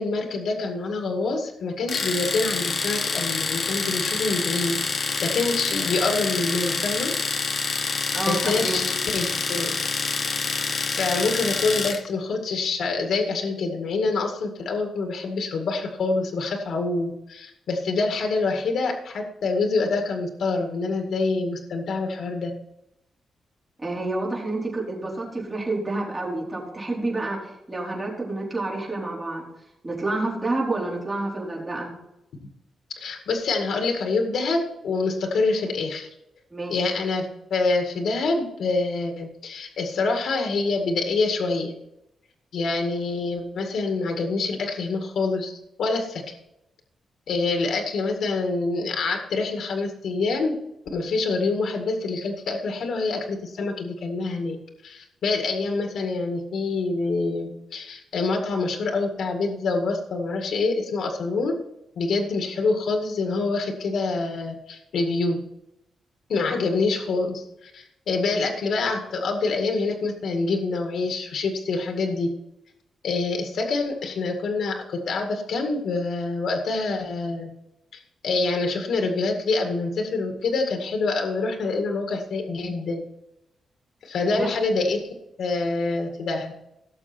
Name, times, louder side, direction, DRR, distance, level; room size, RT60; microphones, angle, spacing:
voice 1, 0.0-7.1 8.3-9.7 10.9-22.5 33.0-36.1 36.7-41.7 42.5-46.2 47.3-50.6 50.9-54.6 54.8-61.5 62.0-65.4 66.3-72.3 73.0-77.5 77.9-83.0 84.0-85.1 85.4-86.5, left 3 dB, 70° left, 3 dB, 2.0 m, -26 dB
Domestic sounds home sounds, 1.9-12.1, left 4 dB, 40° left, 1.2 m, -27 dB
voice 2, 8.1-8.8 23.8-27.4 27.7-29.4 29.8-31.9 36.5-36.7 84.4-84.5, right 2 dB, 15° right, -4 dB, 4.5 m, -28 dB
18.0 x 7.0 x 4.4 m, 0.86 s
wide cardioid pair, 165°, 0 cm